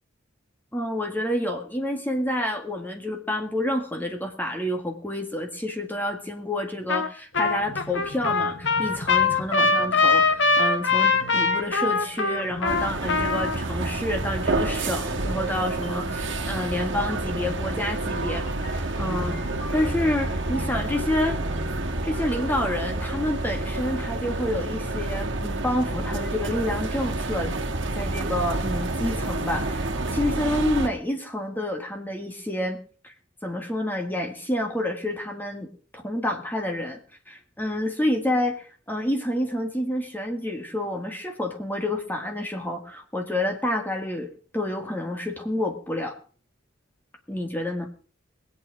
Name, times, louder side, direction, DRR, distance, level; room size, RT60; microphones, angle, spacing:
voice 1, 0.7-18.4 18.7-19.4 19.7-21.4 22.0-27.5 27.9-32.8 33.0-33.1 33.4-35.7 35.9-37.0 37.3-46.2 47.3-47.9, left 1 dB, 10° left, 4 dB, 1.9 m, -28 dB
Trumpet, 6.9-7.1 7.3-13.6, left 4 dB, 65° left, 1.6 m, -22 dB
sound 1, 7.3-24.1, left 1 dB, 80° left, 5.6 m, -42 dB
sound 2, 12.6-30.9, right 2 dB, 65° right, 1.7 m, -29 dB
21.5 x 8.6 x 4.9 m, 0.40 s
head